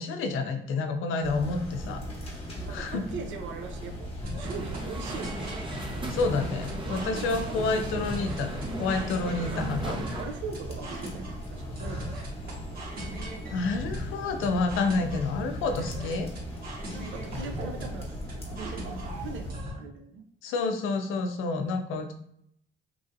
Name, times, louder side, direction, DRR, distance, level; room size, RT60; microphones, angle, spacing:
voice 1, 0.0-2.0 2.7-3.0 6.1-10.0 13.5-16.3 20.4-22.1, left 3 dB, 90° left, 6 dB, 0.4 m, -29 dB
sound 1, 1.2-19.5, equal, 30° left, 0.9 m, -39 dB
voice 2, 2.6-5.5 5.9-6.1 6.7-8.1 9.2-12.4 16.9-20.2, right 5 dB, 75° right, 5 dB, 0.5 m, -41 dB
sound 2, 4.2-19.7, equal, 50° right, 1.3 m, -39 dB
sound 3, 4.4-10.3, right 2 dB, 25° right, 0.6 m, -38 dB
3.1 x 2.5 x 2.5 m, 0.71 s
cardioid pair, 90°, 20 cm